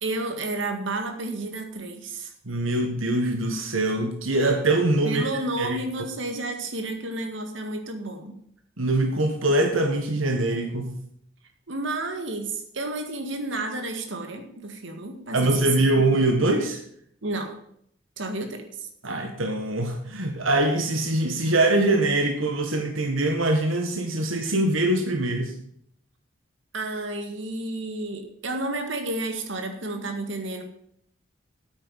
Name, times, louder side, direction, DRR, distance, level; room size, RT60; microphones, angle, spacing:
voice 1, 0.0-2.3 5.0-8.4 11.7-15.7 16.0-16.1 17.2-17.6 18.2-18.9 26.7-30.6, right 2 dB, 70° right, 5 dB, 1.9 m, -31 dB
voice 2, 2.5-5.2 5.6-5.8 8.8-11.0 15.3-16.8 19.0-25.5, right 2 dB, 90° right, 4 dB, 1.7 m, -23 dB
9.1 x 9.0 x 8.2 m, 0.68 s
head